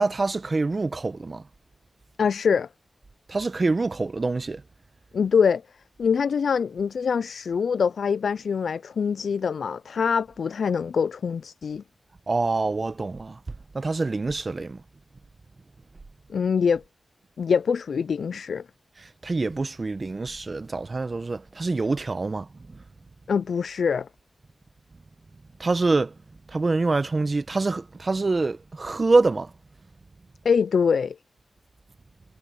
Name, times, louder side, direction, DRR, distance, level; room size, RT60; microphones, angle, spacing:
voice 1, 0.0-1.4 3.3-4.6 12.3-13.4 13.7-14.8 19.0-22.8 25.6-26.1 26.5-29.5, right 3 dB, 45° right, 1.0 m, -25 dB
voice 2, 2.2-2.7 5.1-5.6 6.0-11.8 16.3-16.8 17.4-18.6 23.3-24.1 30.4-31.2, left 6 dB, 80° left, 0.3 m, -24 dB
cardioid pair, 45°, 0 cm